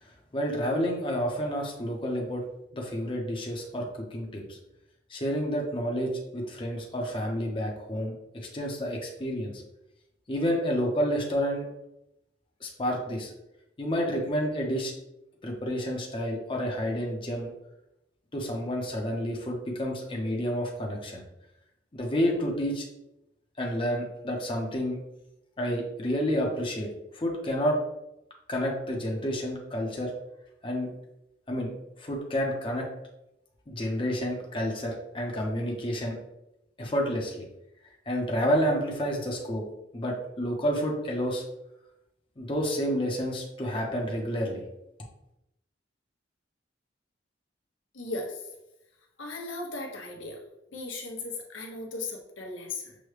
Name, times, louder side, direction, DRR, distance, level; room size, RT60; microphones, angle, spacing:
voice 1, 0.0-2.4 2.7-4.6 5.1-8.1 8.5-9.6 10.3-11.7 12.6-13.3 13.8-14.9 15.4-17.5 18.3-21.2 21.9-22.9 23.6-25.0 25.6-27.8 28.5-30.1 30.6-30.9 31.5-31.7 32.0-32.9 33.7-36.1 36.8-37.5 38.1-39.6 39.9-41.4 42.4-44.6, equal, 25° left, -1 dB, 0.7 m, -29 dB
voice 2, 47.9-48.4 49.2-50.4 50.7-53.0, left 2 dB, 85° left, 1 dB, 0.9 m, -37 dB
6.2 x 2.2 x 3.2 m, 0.87 s
head